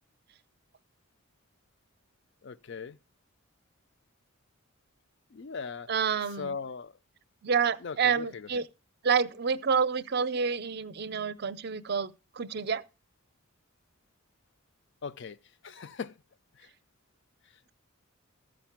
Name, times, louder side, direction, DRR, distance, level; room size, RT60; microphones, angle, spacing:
voice 1, 2.4-3.0 5.3-5.9 6.4-6.9 7.8-8.6 15.0-15.4 15.6-16.2 16.5-16.7, left 5 dB, 55° left, 0.4 m, -39 dB
voice 2, 5.9-6.6 7.4-8.6 9.0-12.8, right 6 dB, 50° right, 0.5 m, -28 dB
14.0 x 5.2 x 5.8 m
head